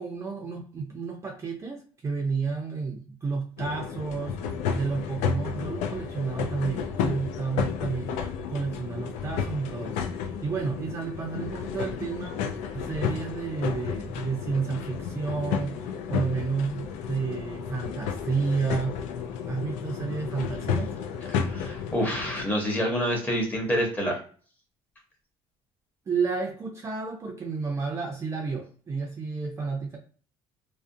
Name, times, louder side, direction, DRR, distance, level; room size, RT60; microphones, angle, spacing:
voice 1, 0.0-4.4 4.7-12.4 12.7-19.0 19.4-21.0 26.1-30.0, right 4 dB, 25° right, 0 dB, 0.4 m, -31 dB
sound 1, 3.6-22.5, left 7 dB, 90° left, 0.4 m, -32 dB
voice 2, 21.3-24.2, equal, 15° left, 0 dB, 0.8 m, -27 dB
2.4 x 2.0 x 2.6 m, 0.42 s
cardioid pair, 145°, 12 cm